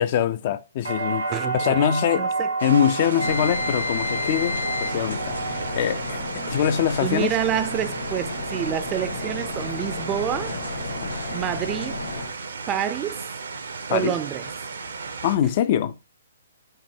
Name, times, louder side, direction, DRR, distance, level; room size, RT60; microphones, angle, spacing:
voice 1, 0.0-1.3 1.5-2.3 2.6-6.2 6.5-7.4 11.0-11.2 13.9-14.1 15.2-16.0, left 9 dB, 40° left, 0.3 m, -23 dB
sound 1, 0.8-8.8 9.1-9.8, right 3 dB, 85° right, 2.0 m, -32 dB
voice 2, 1.3-1.8 2.1-2.5 7.0-10.6 11.3-12.1 12.7-13.3 13.9-14.5, right 11 dB, 25° right, 0.4 m, -28 dB
sound 2, 2.6-15.4, right 4 dB, 70° right, 0.7 m, -35 dB
sound 3, 3.2-12.3, left 3 dB, 85° left, 1.8 m, -31 dB
5.4 x 2.2 x 3.6 m
figure-of-eight pair, 125°, 0 cm